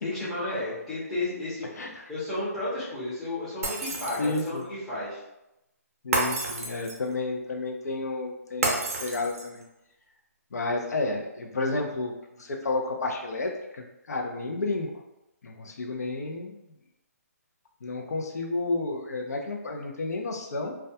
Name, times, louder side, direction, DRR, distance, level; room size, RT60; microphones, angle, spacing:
voice 1, 0.0-1.7 2.1-5.2, left 2 dB, 5° left, -13 dB, 0.5 m, -32 dB
Shatter, 3.6-4.6 6.1-7.1 8.6-9.6, right 3 dB, 60° right, 0.6 m, -30 dB
voice 2, 4.2-4.6 6.0-9.6 10.5-12.1 12.4-14.9 15.4-16.6 17.8-20.8, left 3 dB, 75° left, 2 dB, 0.5 m, -31 dB
2.2 x 2.1 x 2.6 m, 0.91 s
hypercardioid pair, 170°, 9 cm